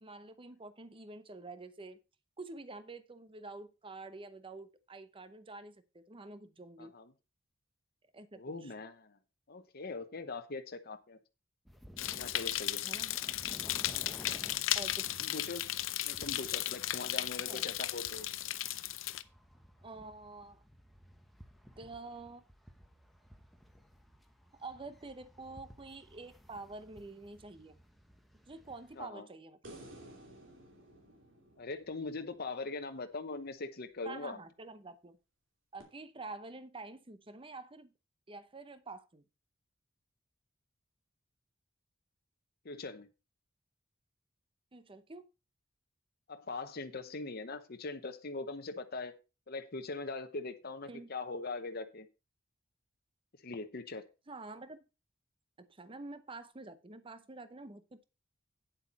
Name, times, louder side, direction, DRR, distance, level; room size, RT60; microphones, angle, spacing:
voice 1, 0.0-2.0 2.4-6.9 8.1-8.7 12.8-13.2 14.7-15.3 17.5-17.6 19.8-20.6 21.8-22.4 24.6-27.8 28.5-29.6 34.0-35.2 35.7-37.9 38.3-39.2 44.7-45.3 50.9-51.1 54.3-54.8 55.6-58.0, right 3 dB, 25° right, 0.8 m, -48 dB
voice 2, 6.8-7.1 8.4-9.2 9.5-11.2 12.1-13.0 14.2-14.6 15.2-15.6 16.0-18.3 29.0-29.3 31.6-34.4 42.6-43.1 46.3-49.1 49.5-52.1 53.4-54.0, left 3 dB, 50° left, 0.9 m, -41 dB
sound 1, 11.6-29.0, equal, ahead, 1.0 m, -56 dB
sound 2, 12.0-19.2, left 13 dB, 85° left, 0.6 m, -35 dB
sound 3, 29.6-33.0 35.8-35.9, right 1 dB, 70° right, 2.9 m, -54 dB
9.2 x 8.0 x 4.2 m
head